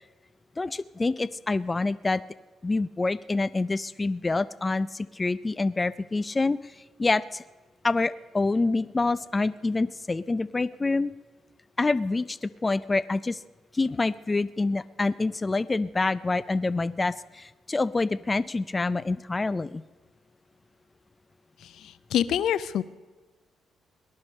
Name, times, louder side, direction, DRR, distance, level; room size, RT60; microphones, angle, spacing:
voice 1, 0.6-2.2 2.6-6.7 7.0-7.4 7.8-11.1 11.8-13.4 13.7-19.8, left 3 dB, 20° left, 18 dB, 0.4 m, -27 dB
voice 2, 21.6-22.8, left 10 dB, 75° left, 17 dB, 0.6 m, -27 dB
19.0 x 11.5 x 5.3 m, 1.3 s
cardioid pair, 90°, 0 cm